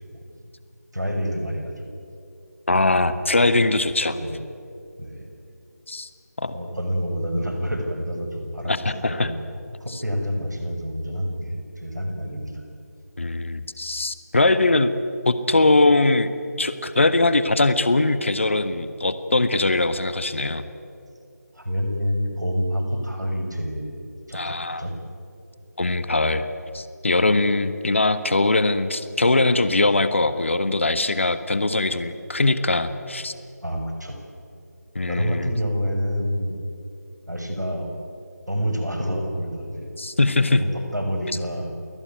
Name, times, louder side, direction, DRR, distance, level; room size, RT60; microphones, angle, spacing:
voice 1, 0.9-1.9 4.1-4.4 5.0-5.3 6.5-12.6 21.5-23.9 24.3-24.9 33.6-34.2 35.1-36.6 37.3-37.9 38.5-39.9 40.5-41.7, equal, 90° right, 4 dB, 6.7 m, -28 dB
voice 2, 2.7-4.1 5.9-6.1 6.4-6.5 8.6-9.3 13.2-14.9 15.2-16.3 16.6-20.7 24.3-24.8 25.8-26.5 26.7-33.3 34.9-35.5 40.0-40.6, left 2 dB, 45° left, 11 dB, 1.5 m, -21 dB
29.0 x 19.5 x 9.5 m, 2.6 s
figure-of-eight pair, 165°, 9 cm